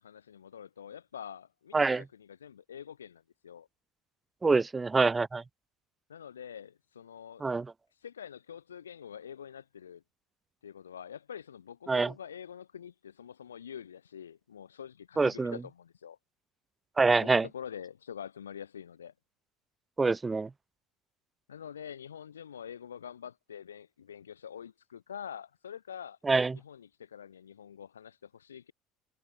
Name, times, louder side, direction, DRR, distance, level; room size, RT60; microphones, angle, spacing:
voice 1, 0.0-3.7 6.1-7.4 7.9-10.0 10.6-16.2 17.1-19.1 21.5-26.2 26.5-28.7, left 8 dB, 90° left, 5.6 m, -46 dB
voice 2, 4.4-5.4 7.4-7.6 11.9-12.1 15.2-15.5 17.0-17.5 20.0-20.5 26.3-26.6, right 3 dB, 20° right, 1.2 m, -25 dB
hypercardioid pair, 70°, 0 cm